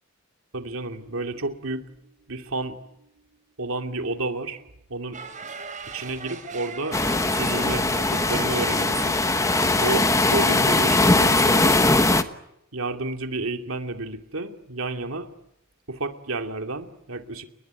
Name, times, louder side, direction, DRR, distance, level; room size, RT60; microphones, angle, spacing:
voice 1, 0.5-3.1 3.6-5.2 5.9-7.0 7.3-9.2 9.8-10.1 10.3-11.8 12.7-15.3 15.9-17.5, right 2 dB, 70° right, 5 dB, 2.6 m, -31 dB
sound 1, 5.1-10.9, right 4 dB, 35° right, 4.5 m, -39 dB
sound 2, 6.9-12.2, left 2 dB, 15° left, 1.2 m, -20 dB
30.0 x 21.0 x 9.4 m, 0.82 s
head